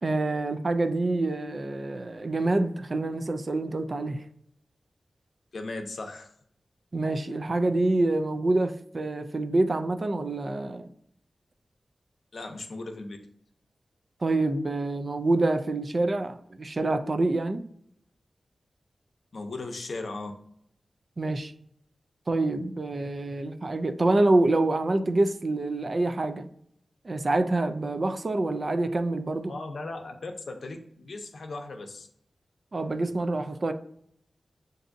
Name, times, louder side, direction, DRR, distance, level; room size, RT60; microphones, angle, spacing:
voice 1, 0.0-4.2 6.9-10.9 14.2-17.6 21.2-21.5 22.3-26.5 27.0-29.5 32.7-33.7, right 2 dB, 45° right, 0.4 m, -26 dB
voice 2, 5.5-6.3 12.3-13.2 19.3-20.3 29.5-32.1, left 3 dB, 70° left, 0.6 m, -37 dB
6.9 x 2.6 x 2.5 m
wide cardioid pair, 90°, 0 cm